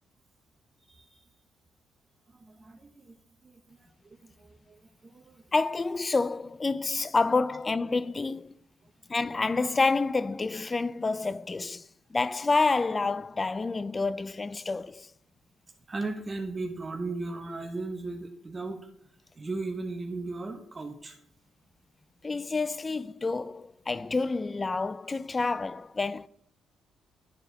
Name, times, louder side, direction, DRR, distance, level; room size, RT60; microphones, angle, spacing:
voice 1, 0.9-1.2 2.3-3.2 3.4-3.9 4.2-5.4 15.9-18.8 19.4-21.2, right 3 dB, 30° right, 0.9 m, -37 dB
voice 2, 5.5-8.5 9.1-15.1 22.2-26.3, left 3 dB, 25° left, 0.3 m, -28 dB
11.0 x 4.4 x 3.4 m
cardioid pair, 90°, 0 cm